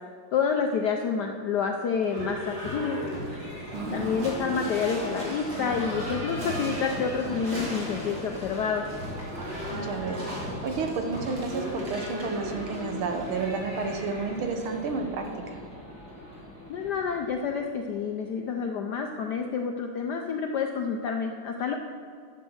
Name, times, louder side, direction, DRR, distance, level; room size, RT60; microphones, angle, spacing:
voice 1, 0.3-3.0 3.9-9.0 16.7-21.7, left 6 dB, 75° left, 3 dB, 0.9 m, -28 dB
Livestock farm animals working animals / Bell, 2.0-17.9, equal, 45° right, 2.6 m, -36 dB
voice 2, 3.7-4.1 9.7-10.2 10.6-15.6, right 4 dB, 70° right, 5 dB, 1.8 m, -31 dB
12.0 x 7.3 x 6.3 m, 2.4 s
omnidirectional pair, 2.4 m